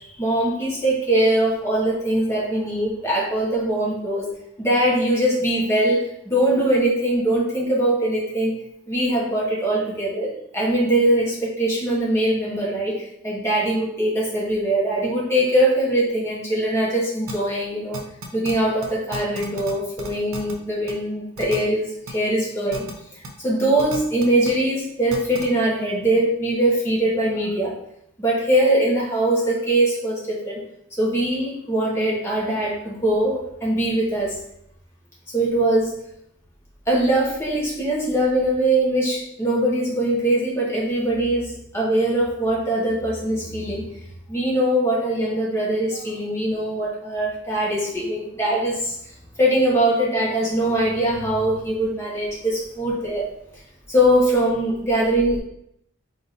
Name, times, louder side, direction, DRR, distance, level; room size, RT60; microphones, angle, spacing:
voice 1, 0.0-4.3 4.6-8.6 8.9-18.0 18.3-22.9 23.1-27.7 28.2-30.6 31.0-34.4 35.3-36.0 36.9-43.8 44.3-49.1 49.4-53.3 53.9-55.4, right 1 dB, 15° left, -6 dB, 1.2 m, -22 dB
sound 1, 17.3-17.4 17.9-18.5 18.8-18.9 19.1-19.7 20.0-20.5 20.9-21.0 21.4-21.6 22.1-22.2 22.7-22.9 23.2-23.3 23.8-24.5 25.1-25.4, right 1 dB, 90° right, 0.8 m, -33 dB
3.9 x 2.6 x 4.1 m, 0.74 s
head